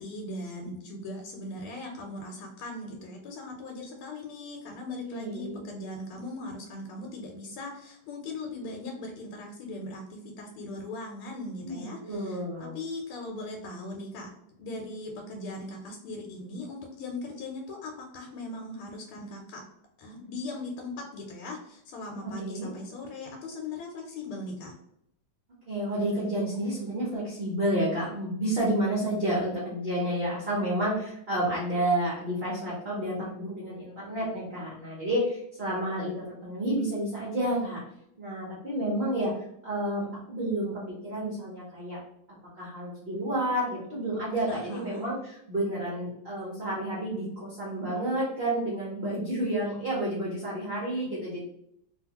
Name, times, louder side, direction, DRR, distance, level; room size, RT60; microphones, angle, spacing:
voice 1, 0.0-19.6 20.0-24.7 44.5-45.0, left 2 dB, 85° left, 1 dB, 1.5 m, -39 dB
voice 2, 5.1-5.6 11.6-12.8 22.4-22.7 25.6-37.8 38.2-39.3 39.6-42.0 42.6-51.4, right 1 dB, 75° right, -6 dB, 0.5 m, -30 dB
3.2 x 2.4 x 2.8 m, 0.76 s
omnidirectional pair, 2.3 m